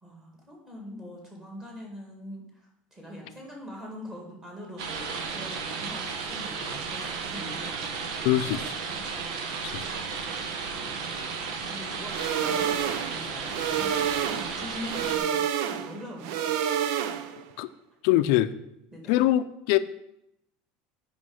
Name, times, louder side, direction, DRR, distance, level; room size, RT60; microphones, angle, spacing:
voice 1, 0.0-7.7 8.2-9.0 9.3-9.7 10.7-11.1 11.6-15.4 15.7-16.5 18.9-19.2, left 1 dB, 15° right, -1 dB, 2.3 m, -43 dB
sound 1, 4.8-15.2, right 5 dB, 85° right, 1.3 m, -34 dB
voice 2, 8.2-8.6 9.6-9.8 17.6-17.7 18.0-18.5 19.1-19.8, left 14 dB, 65° left, 12 dB, 0.5 m, -23 dB
sound 2, 12.1-17.5, right 9 dB, 65° right, 0.6 m, -29 dB
8.4 x 5.3 x 6.4 m, 0.80 s
cardioid pair, 175°, 4 cm